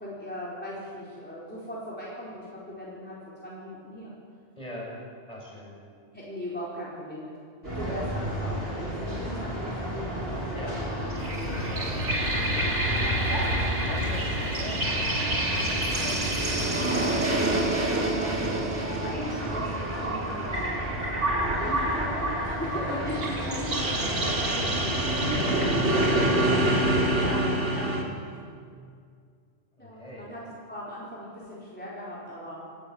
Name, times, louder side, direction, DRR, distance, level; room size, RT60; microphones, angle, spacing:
voice 1, 0.0-3.2 3.4-4.1 6.1-7.3 7.6-12.7 16.7-20.9 21.5-25.3 27.1-28.3 29.8-30.4 30.7-32.6, left 1 dB, 10° left, -7 dB, 4.2 m, -39 dB
voice 2, 4.6-4.9 5.3-5.7 7.8-8.0 10.5-10.8 13.2-17.1 22.7-23.0 25.4-27.2 27.9-28.2 29.8-30.3, equal, 35° left, -3 dB, 6.6 m, -41 dB
sound 1, 7.6-27.2, equal, 60° right, 8.4 m, -34 dB
sound 2, 11.1-28.0, right 1 dB, 80° right, 2.7 m, -27 dB
sound 3, 11.2-17.6, equal, 70° left, 3.8 m, -37 dB
27.0 x 13.0 x 9.5 m, 2.2 s
omnidirectional pair, 1.2 m